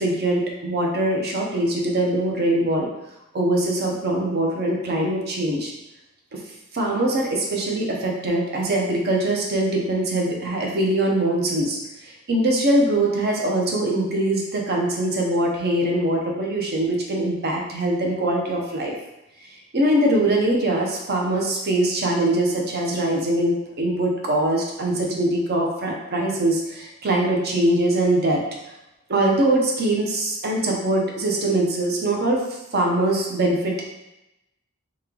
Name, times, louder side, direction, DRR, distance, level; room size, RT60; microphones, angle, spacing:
voice 1, 0.0-2.9 3.3-5.7 6.3-6.4 6.7-18.9 19.7-28.4 29.1-32.5 32.7-33.9, right 1 dB, 45° right, 0 dB, 0.7 m, -22 dB
3.1 x 2.9 x 3.7 m, 0.91 s
head